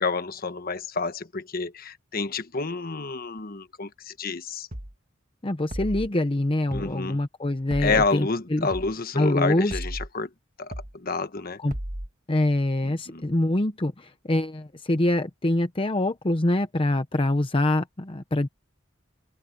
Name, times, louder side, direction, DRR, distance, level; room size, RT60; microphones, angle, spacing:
voice 1, 0.0-4.7 6.7-7.2 7.8-10.3 10.6-11.6 12.8-13.2, left 4 dB, 45° left, 1.3 m, -29 dB
sound 1, 4.7-4.9 5.7-6.1 6.7-6.9 7.7-8.1 8.7-8.9 9.7-10.1 10.7-10.9 11.7-12.1, right 1 dB, 40° right, 1.7 m, -34 dB
voice 2, 5.4-8.7 9.1-9.8 11.6-11.7 12.3-18.5, left 1 dB, 25° left, 0.8 m, -25 dB
head